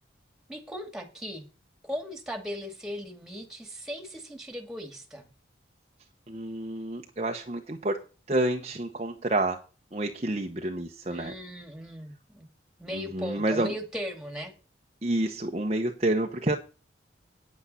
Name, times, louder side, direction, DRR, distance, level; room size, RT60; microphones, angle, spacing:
voice 1, 0.5-1.4 1.8-5.3 11.1-12.5 12.8-14.5, equal, 5° right, 5 dB, 2.3 m, -38 dB
voice 2, 6.3-8.0 8.3-9.6 9.9-11.3 12.9-13.7 15.0-16.6, right 1 dB, 35° right, 3 dB, 0.9 m, -29 dB
9.6 x 8.5 x 5.6 m, 0.34 s
head